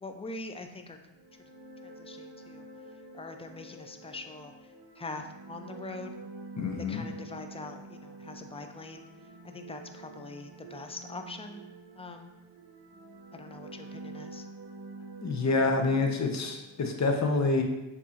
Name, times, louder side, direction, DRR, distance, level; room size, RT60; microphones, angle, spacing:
voice 1, 0.0-1.0 2.0-2.6 3.1-4.5 5.0-6.1 6.9-9.0 9.4-11.6 12.0-12.3 13.3-14.4, left 3 dB, 15° left, 6 dB, 0.3 m, -43 dB
sound 1, 1.1-16.8, right 2 dB, 55° right, 0.8 m, -47 dB
voice 2, 6.6-7.1 15.2-17.6, left 3 dB, 35° left, 4 dB, 0.8 m, -27 dB
6.7 x 2.8 x 2.5 m, 0.98 s
cardioid pair, 70°, 47 cm